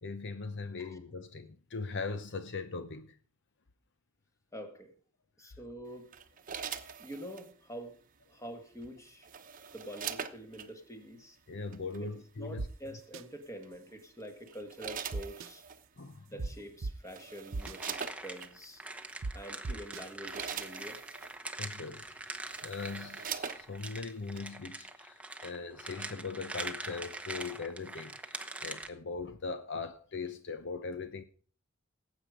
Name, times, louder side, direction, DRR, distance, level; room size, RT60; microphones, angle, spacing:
voice 1, 0.0-3.2 11.5-12.6 16.0-16.4 21.6-31.2, left 4 dB, 55° left, 0.8 m, -40 dB
voice 2, 4.5-4.9 5.4-6.1 7.0-8.0 8.3-9.3 9.7-11.4 12.0-12.1 12.4-15.6 16.3-18.8 19.3-21.0, equal, 15° left, 2.0 m, -46 dB
sound 1, 6.1-7.5 8.8-10.7 11.7-12.0 13.6-13.9 14.5-15.8 16.6-16.7 17.0-18.5 19.3-19.4 19.9-21.4 22.0-22.1 22.4-24.0 24.4-24.5, right 7 dB, 40° right, 1.0 m, -42 dB
sound 2, 12.6-12.7 13.1-13.2 15.1-15.5 16.4-16.5 16.8-16.9 17.5-17.7 19.2-19.3 19.6-20.0, right 3 dB, 65° right, 0.7 m, -35 dB
sound 3, 17.6-28.9, right 2 dB, 5° right, 1.0 m, -43 dB
18.0 x 8.3 x 5.2 m
head